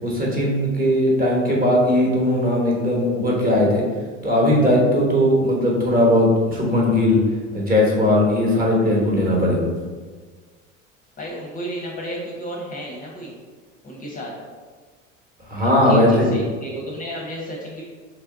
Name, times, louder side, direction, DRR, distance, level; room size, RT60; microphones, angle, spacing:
voice 1, 0.0-3.8 4.2-7.2 7.5-9.7 15.5-16.3, left 1 dB, 25° right, -3 dB, 1.1 m, -18 dB
voice 2, 11.2-13.4 13.8-14.3 15.6-17.8, equal, 20° left, -3 dB, 0.7 m, -32 dB
3.3 x 3.2 x 3.7 m, 1.4 s
figure-of-eight pair, 70°, 38 cm